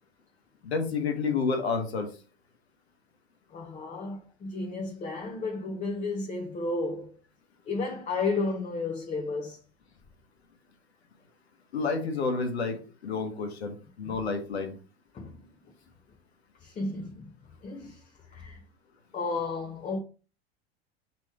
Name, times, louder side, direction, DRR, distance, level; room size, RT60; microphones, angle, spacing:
voice 1, 0.6-2.1 11.7-14.7, left 4 dB, 85° left, 1.0 m, -30 dB
voice 2, 3.5-7.2 7.7-9.6 14.1-14.2 15.1-15.4 16.6-17.3 17.6-18.0 18.3-18.6 19.1-20.0, left 3 dB, 25° left, 0.7 m, -33 dB
3.3 x 3.0 x 4.6 m
hypercardioid pair, 90°, 31 cm